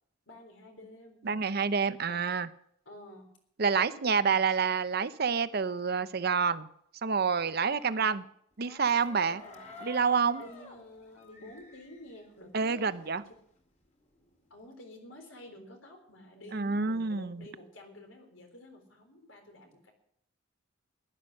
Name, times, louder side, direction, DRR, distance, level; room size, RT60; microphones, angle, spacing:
voice 1, 0.3-1.4 2.1-2.2 2.9-3.3 3.6-4.5 7.7-8.2 9.3-9.9 10.4-13.2 14.5-19.9, left 1 dB, 85° left, 4 dB, 3.7 m, -50 dB
voice 2, 1.2-2.5 3.6-6.7 7.0-8.2 8.6-9.4 9.8-10.4 12.5-13.2 16.5-17.5, right 5 dB, 55° right, 14 dB, 0.7 m, -28 dB
sound 1, 8.5-13.2 13.6-14.6, left 5 dB, 35° left, 2.1 m, -50 dB
15.0 x 11.0 x 6.5 m, 0.70 s
head